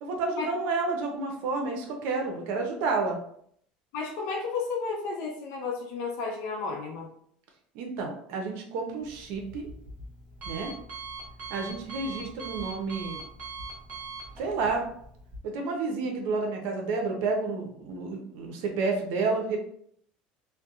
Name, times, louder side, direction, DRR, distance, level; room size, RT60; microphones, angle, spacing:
voice 1, 0.0-3.2 7.7-9.7 10.5-10.7 11.5-13.2 14.4-14.8 15.4-19.6, right 3 dB, 75° right, 2 dB, 0.6 m, -30 dB
voice 2, 3.9-7.1, left 4 dB, 70° left, 0 dB, 0.6 m, -32 dB
Alarm, 9.0-15.4, right 3 dB, 40° right, 1.1 m, -42 dB
2.6 x 2.1 x 2.4 m, 0.66 s
supercardioid pair, 105°, 4 cm